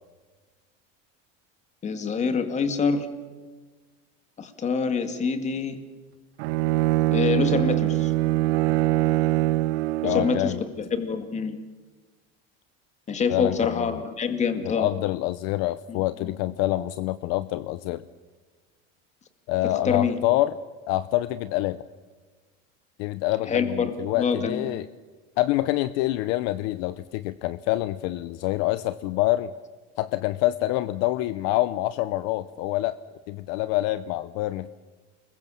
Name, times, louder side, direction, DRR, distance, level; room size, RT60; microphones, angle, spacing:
voice 1, 1.8-3.1 4.4-5.8 7.1-8.1 10.0-11.6 13.1-14.9 15.9-16.3 19.6-20.2 23.4-24.7, left 5 dB, 20° left, 7 dB, 2.2 m, -26 dB
Bowed string instrument, 6.4-10.6, right 17 dB, 85° right, 0.7 m, -23 dB
voice 2, 10.0-10.6 13.3-14.0 14.6-18.0 19.5-20.5 20.9-21.8 23.0-24.9 25.4-29.5 30.0-33.0 33.3-34.7, left 16 dB, 55° left, 14 dB, 0.8 m, -26 dB
29.5 x 21.5 x 7.1 m, 1.4 s
cardioid pair, 155°, 31 cm